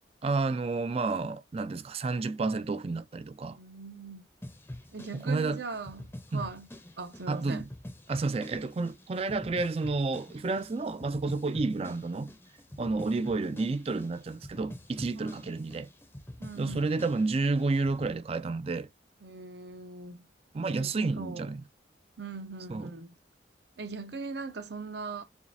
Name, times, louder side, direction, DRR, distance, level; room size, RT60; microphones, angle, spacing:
voice 1, 0.2-3.6 5.1-5.6 6.3-6.4 7.3-7.7 8.1-12.3 12.8-15.9 16.6-18.9 20.5-21.6 22.7-22.9, right 3 dB, 30° right, 0.3 m, -30 dB
voice 2, 3.5-4.2 4.9-6.7 7.0-7.7 15.1-15.4 16.4-17.0 19.2-20.3 20.7-21.5 22.2-23.1 23.8-25.2, right 4 dB, 60° right, 0.7 m, -40 dB
sound 1, 4.4-18.1, left 1 dB, 15° left, 0.6 m, -46 dB
7.0 x 2.4 x 2.6 m
head